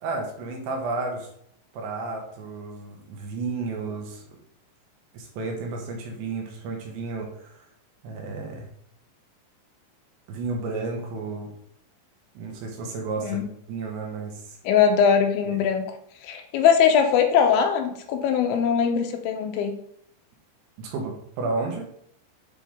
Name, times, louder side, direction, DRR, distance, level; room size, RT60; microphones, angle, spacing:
voice 1, 0.0-1.3 1.7-4.2 5.1-7.6 8.0-8.7 10.3-11.5 12.4-13.4 13.7-14.4 15.5-15.6 20.8-21.9, right 3 dB, 75° right, 1 dB, 3.3 m, -32 dB
voice 2, 14.6-15.8 16.2-19.7, left 7 dB, 80° left, 4 dB, 3.0 m, -21 dB
9.1 x 3.8 x 3.5 m, 0.70 s
omnidirectional pair, 5.5 m